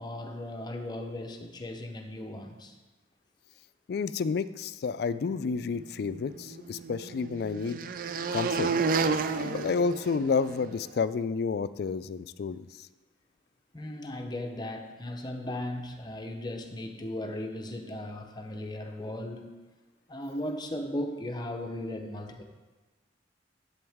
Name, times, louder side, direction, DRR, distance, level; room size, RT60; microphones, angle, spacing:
voice 1, 0.0-2.7 13.7-19.6 20.1-22.4, left 1 dB, 25° left, 4 dB, 0.8 m, -37 dB
voice 2, 3.9-7.8 8.3-8.7 9.0-12.9, left 5 dB, 60° left, 14 dB, 0.3 m, -30 dB
sound 1, 6.1-10.7, right 4 dB, 50° right, 0.4 m, -31 dB
11.0 x 7.9 x 3.5 m, 1.3 s
head